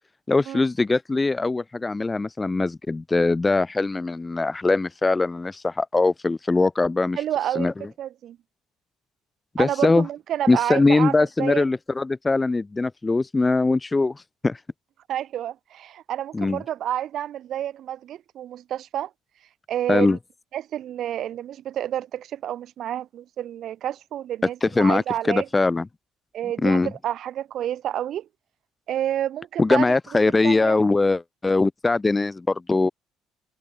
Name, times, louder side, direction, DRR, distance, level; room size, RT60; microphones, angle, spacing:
voice 1, 0.3-7.2 7.6-7.7 9.6-10.1 10.5-14.6 16.3-16.6 19.9-20.2 24.6-25.9 26.6-26.9 29.6-32.9, left 3 dB, 15° left, 0.6 m, -21 dB
voice 2, 7.2-7.7 8.0-8.4 9.6-11.6 15.1-19.1 19.7-20.2 20.5-25.5 26.3-28.3 28.9-29.9 30.4-30.8, right 11 dB, 45° right, 1.5 m, -29 dB
cardioid pair, 165°, 0 cm